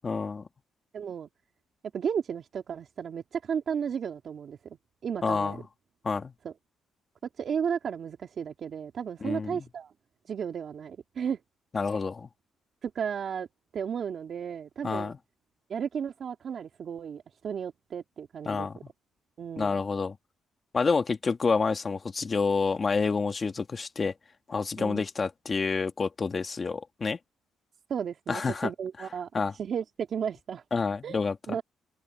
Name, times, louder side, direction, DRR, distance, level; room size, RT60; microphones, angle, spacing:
voice 1, 0.0-0.4 5.2-5.6 6.0-6.3 9.2-9.6 11.7-12.3 14.8-15.2 18.5-18.8 19.6-20.2 20.7-24.1 24.5-27.2 28.3-28.7 29.3-29.5 30.7-31.4, left 4 dB, 35° left, 1.8 m, -28 dB
voice 2, 0.9-1.3 1.9-4.8 5.0-5.6 6.4-6.5 7.4-9.9 10.3-11.4 11.9-12.0 12.8-13.5 13.7-15.1 15.7-18.7 19.4-19.8 24.8-25.0 27.9-30.6 31.0-31.2 31.5-31.6, right 7 dB, 55° right, 2.1 m, -34 dB
cardioid pair, 90°, 0 cm